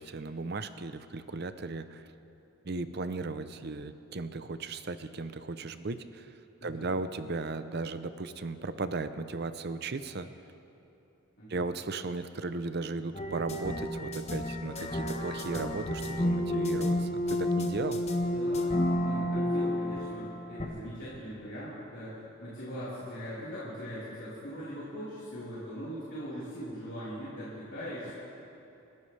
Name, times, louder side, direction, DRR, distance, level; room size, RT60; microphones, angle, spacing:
voice 1, 0.0-2.0 2.6-6.3 6.6-10.3 11.5-18.0, right 3 dB, 50° right, 11 dB, 0.6 m, -36 dB
voice 2, 6.6-6.9 11.4-11.6 18.3-18.7 19.0-28.1, equal, 60° left, -12 dB, 4.2 m, -41 dB
sound 1, 13.1-20.7, left 1 dB, 30° left, 1.1 m, -31 dB
29.5 x 13.0 x 3.3 m, 2.8 s
head